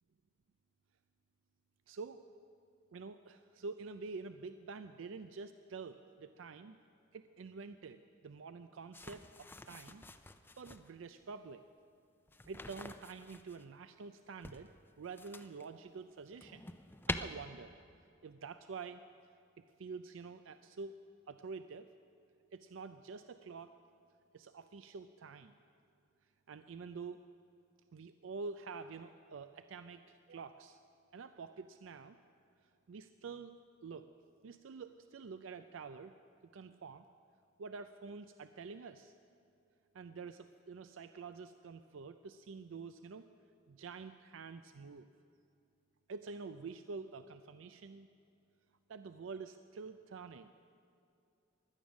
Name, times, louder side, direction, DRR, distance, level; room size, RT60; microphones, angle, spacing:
voice 1, 1.9-2.2 2.9-6.8 7.1-10.0 10.6-11.6 12.5-16.6 17.1-17.7 18.2-19.0 19.8-20.9 21.3-21.9 22.5-23.7 24.3-25.6 26.5-27.2 27.9-30.8 31.1-32.2 32.9-33.5 33.8-34.1 34.4-36.1 36.5-37.1 37.6-39.1 39.9-43.3 43.7-45.1 46.1-48.1 48.9-50.5, right 4 dB, 90° right, 10 dB, 0.4 m, -47 dB
sound 1, 8.9-10.9 12.3-13.6 14.4-15.7 16.1-17.2, left 2 dB, 10° left, 0.5 m, -45 dB
16.5 x 12.0 x 6.3 m, 2.6 s
head